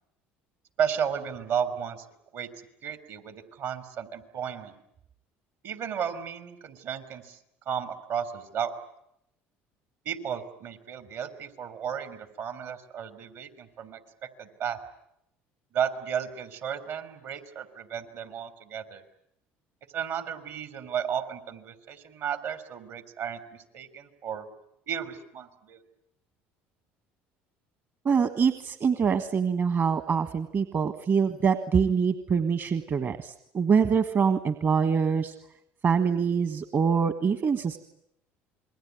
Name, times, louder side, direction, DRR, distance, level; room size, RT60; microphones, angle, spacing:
voice 1, 0.8-2.0 2.3-2.5 2.8-4.7 5.6-7.4 7.6-8.7 10.0-14.8 15.7-19.0 19.9-24.5 24.9-25.8, right 8 dB, 65° right, 11 dB, 3.6 m, -33 dB
voice 2, 28.0-35.3 35.8-37.8, right 6 dB, 40° right, 11 dB, 1.5 m, -24 dB
28.0 x 21.5 x 9.5 m, 0.76 s
supercardioid pair, 75°, 6 cm